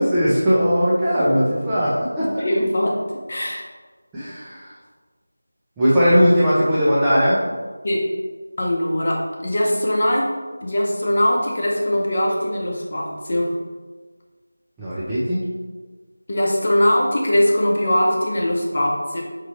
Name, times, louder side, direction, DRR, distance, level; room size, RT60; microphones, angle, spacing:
voice 1, 0.0-2.3 4.1-4.7 5.8-7.4 14.8-15.4, equal, 5° right, -12 dB, 0.4 m, -18 dB
voice 2, 2.2-3.7 7.8-8.1 8.6-10.3 10.6-13.5 16.3-19.2, left 1 dB, 35° left, -2 dB, 0.8 m, -21 dB
5.0 x 2.9 x 3.2 m, 1.4 s
figure-of-eight pair, 175°, 0 cm